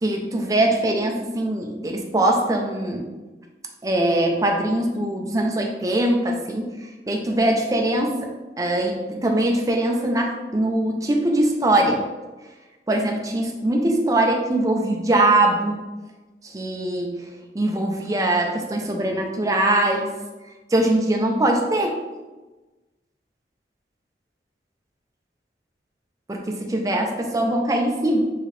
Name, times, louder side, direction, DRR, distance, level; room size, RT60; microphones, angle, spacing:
voice 1, 0.0-3.1 3.8-6.7 7.1-8.3 8.6-12.0 12.9-15.8 16.4-17.2 17.5-20.1 20.7-22.0 26.3-28.3, right 1 dB, 20° right, 1 dB, 0.5 m, -22 dB
4.7 x 2.9 x 3.2 m, 1.2 s
head